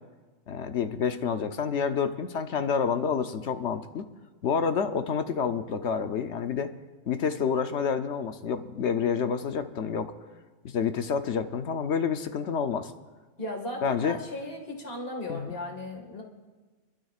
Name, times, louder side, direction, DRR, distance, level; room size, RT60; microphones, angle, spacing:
voice 1, 0.5-4.1 4.4-6.7 7.1-10.1 10.6-12.9 13.8-14.2 15.3-15.5, left 6 dB, 60° left, 8 dB, 0.9 m, -28 dB
voice 2, 13.4-16.2, left 1 dB, 45° left, 2 dB, 2.1 m, -36 dB
25.5 x 12.5 x 2.4 m, 1.3 s
omnidirectional pair, 1.5 m